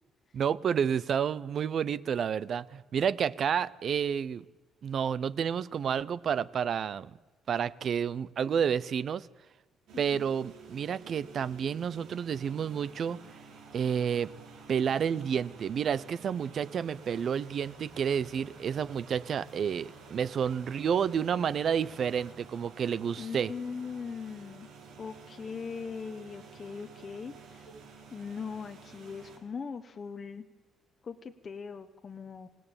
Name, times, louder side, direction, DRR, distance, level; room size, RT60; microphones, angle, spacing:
voice 1, 0.3-4.4 4.8-7.1 7.5-9.3 10.0-13.2 13.7-14.3 14.7-23.5, right 7 dB, 40° right, 19 dB, 0.7 m, -30 dB
sound 1, 9.9-29.4, right 4 dB, 85° right, 6.8 m, -51 dB
voice 2, 23.2-24.7 25.0-27.7 28.1-30.4 31.0-32.5, left 5 dB, 25° left, 6 dB, 1.0 m, -40 dB
26.0 x 18.5 x 9.0 m, 1.2 s
cardioid pair, 170°, 0 cm